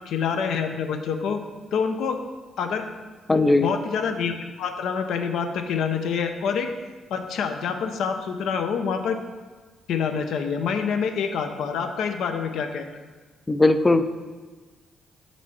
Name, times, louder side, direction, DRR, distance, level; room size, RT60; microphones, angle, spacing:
voice 1, 0.1-1.4 1.7-2.2 2.6-2.9 3.6-6.7 7.1-9.2 9.9-12.9, left 6 dB, 75° left, 6 dB, 0.5 m, -26 dB
voice 2, 3.3-3.7 13.5-14.0, left 2 dB, 20° left, 11 dB, 0.3 m, -18 dB
6.1 x 4.5 x 4.1 m, 1.4 s
cardioid pair, 90°, 0 cm